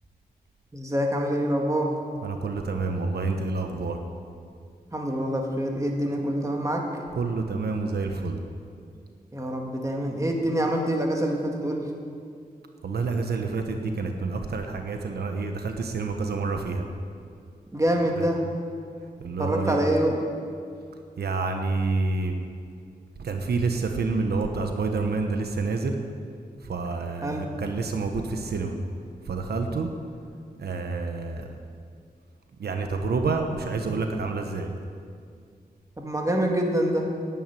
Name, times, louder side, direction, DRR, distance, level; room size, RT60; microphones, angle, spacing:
voice 1, 0.7-1.9 4.9-6.9 9.3-11.9 17.7-18.4 19.4-20.1 27.2-27.4 36.0-37.1, right 1 dB, 20° right, 0 dB, 2.2 m, -25 dB
voice 2, 2.2-4.0 7.2-8.4 12.8-16.8 18.2-18.3 19.2-19.8 21.2-22.3 23.2-25.9 26.7-28.7 29.3-29.9 30.6-31.5 32.6-34.7, right 3 dB, 90° right, 4 dB, 1.1 m, -28 dB
11.0 x 9.3 x 9.1 m, 2.2 s
wide cardioid pair, 80°, 16 cm